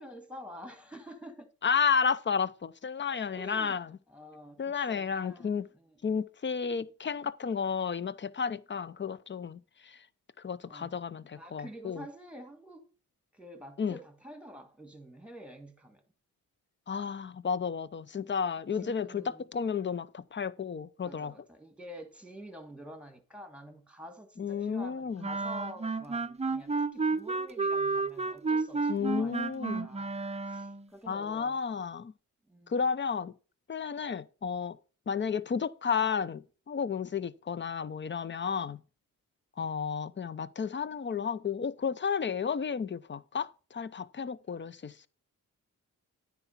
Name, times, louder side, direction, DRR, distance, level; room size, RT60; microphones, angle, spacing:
voice 1, 0.0-1.5 3.1-3.8 4.1-6.1 10.7-11.0 11.4-12.9 13.3-16.0 18.7-19.5 21.0-30.2 30.5-31.6 32.5-32.8, equal, 5° right, 2.0 m, -48 dB
voice 2, 1.6-3.9 4.6-5.7 6.0-10.0 10.4-12.1 13.8-13.9 16.9-21.3 24.4-25.3 28.9-29.9 31.1-32.1 32.7-33.3 33.7-34.8 35.1-38.8 39.6-45.1, left 6 dB, 35° left, 0.6 m, -32 dB
sound 1, 25.2-30.9, right 4 dB, 20° right, 0.6 m, -31 dB
9.7 x 4.6 x 5.7 m
cardioid pair, 60°, 35 cm